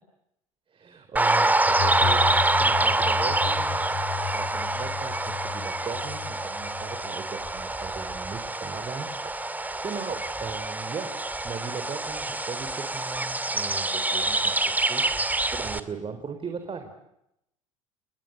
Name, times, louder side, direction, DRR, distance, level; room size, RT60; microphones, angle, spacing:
voice 1, 0.7-2.3 2.6-9.5 9.8-11.1 11.4-15.2 15.5-17.0, right 5 dB, 30° right, 7 dB, 4.1 m, -38 dB
sound 1, 1.2-15.8, right 2 dB, 10° right, 2.2 m, -26 dB
sound 2, 1.6-8.2, left 11 dB, 60° left, 6.3 m, -35 dB
30.0 x 21.0 x 7.9 m, 0.83 s
hypercardioid pair, 70°, 17 cm